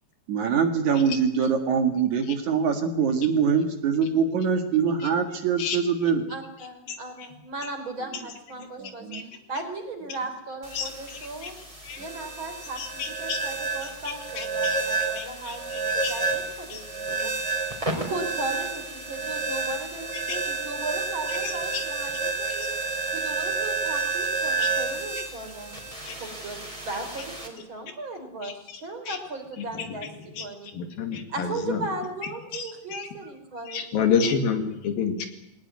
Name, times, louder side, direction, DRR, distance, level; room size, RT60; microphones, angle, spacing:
voice 1, 0.3-6.2 8.8-9.2, right 6 dB, 55° right, 6 dB, 2.9 m, -24 dB
voice 2, 6.3-11.5 12.0-17.3 18.0-22.7 23.1-25.7 26.1-26.6 26.8-30.1 30.4-30.7 31.3-34.4, right 2 dB, 35° right, 6 dB, 4.3 m, -37 dB
sound 1, 10.6-27.5, right 4 dB, 10° right, 4.1 m, -30 dB
voice 3, 12.8-13.4 14.4-14.8 15.2-15.6 16.0-16.1 16.7-16.8 20.3-20.4 21.7-21.8 22.6-22.7 24.6-24.7 26.1-26.2 28.4-28.5 29.1-29.2 30.4-30.5 30.7-31.8 32.5-32.6 32.9-33.1 33.7-35.3, left 6 dB, 75° left, 7 dB, 4.0 m, -28 dB
21.0 x 18.5 x 9.6 m, 0.86 s
omnidirectional pair, 4.2 m